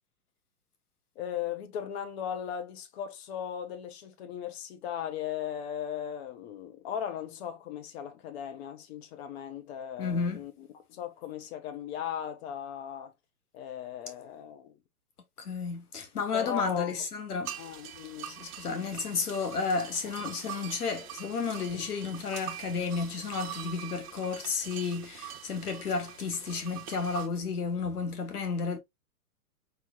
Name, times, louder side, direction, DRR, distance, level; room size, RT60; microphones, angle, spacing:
voice 1, 1.1-13.1 13.5-14.8 16.3-17.0 17.6-18.4 18.7-18.9, left 9 dB, 45° left, 1.3 m, -37 dB
voice 2, 10.0-10.4 15.4-17.6 18.3-28.8, left 5 dB, 75° left, 1.2 m, -32 dB
sound 1, 17.4-27.3, right 10 dB, 30° right, 1.0 m, -43 dB
5.4 x 3.3 x 2.2 m
hypercardioid pair, 125°, 46 cm